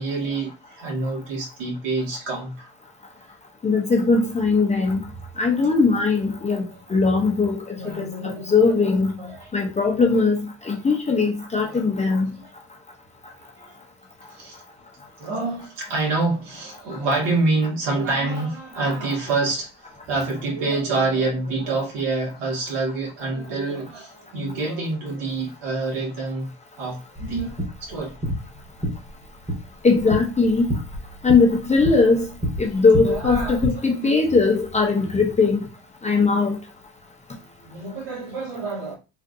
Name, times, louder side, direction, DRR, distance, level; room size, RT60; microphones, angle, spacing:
voice 1, 0.0-2.7 7.8-8.8 9.2-9.5 11.6-11.9 12.2-12.5 13.6-13.8 14.3-14.6 15.2-26.5 26.8-28.1 33.0-34.2 37.7-39.0, right 3 dB, 75° right, 1.7 m, -27 dB
voice 2, 3.6-5.1 5.4-9.2 9.5-12.3 29.8-30.8 31.2-32.3 32.6-35.7 36.0-36.6, left 4 dB, 15° left, 0.5 m, -20 dB
sound 1, 27.2-33.7, equal, 10° right, 1.1 m, -30 dB
3.7 x 2.5 x 2.5 m
cardioid pair, 130°, 43 cm